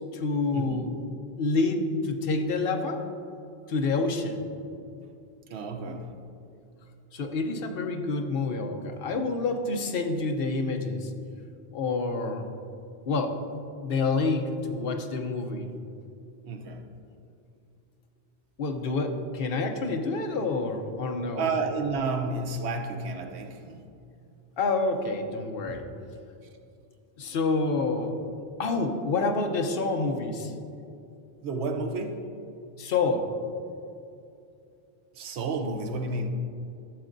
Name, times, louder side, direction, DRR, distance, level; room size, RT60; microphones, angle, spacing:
voice 1, 0.1-0.9 1.4-3.0 3.7-4.4 7.1-11.1 11.7-12.4 13.1-13.4 13.8-15.7 18.6-21.5 24.6-25.8 27.2-28.2 28.6-30.5 32.8-33.3, left 3 dB, 65° left, 5 dB, 0.9 m, -28 dB
voice 2, 5.5-6.2 16.4-16.8 21.3-23.9 25.7-25.8 31.4-32.3 35.1-36.3, right 3 dB, 90° right, 5 dB, 1.0 m, -31 dB
12.0 x 7.2 x 2.6 m, 2.6 s
omnidirectional pair, 1.1 m